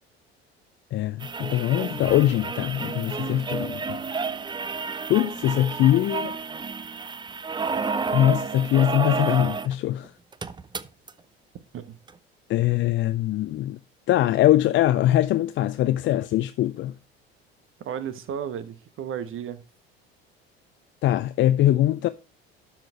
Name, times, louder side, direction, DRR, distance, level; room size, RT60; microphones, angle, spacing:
voice 1, 0.9-4.0 5.1-6.4 8.1-10.1 12.5-13.8 14.1-16.9 21.0-22.1, left 13 dB, 40° left, 0.5 m, -22 dB
sound 1, 1.2-9.7 10.0-10.1 10.3-11.1 12.1-12.2, right 5 dB, 15° right, 0.5 m, -31 dB
voice 2, 17.8-19.6, right 8 dB, 40° right, 1.2 m, -33 dB
12.0 x 4.6 x 4.6 m
figure-of-eight pair, 65°, 31 cm